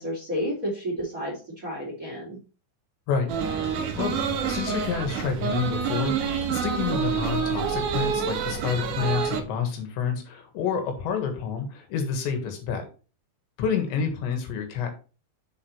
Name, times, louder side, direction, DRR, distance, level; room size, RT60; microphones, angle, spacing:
voice 1, 0.0-2.4, equal, 25° right, -2 dB, 2.3 m, -31 dB
sound 1, 3.3-9.4, right 7 dB, 70° right, 2.0 m, -27 dB
voice 2, 4.0-6.2 6.5-12.9 13.6-14.9, left 6 dB, 90° left, 5 dB, 3.9 m, -28 dB
7.3 x 6.4 x 3.2 m, 0.34 s
omnidirectional pair, 5.0 m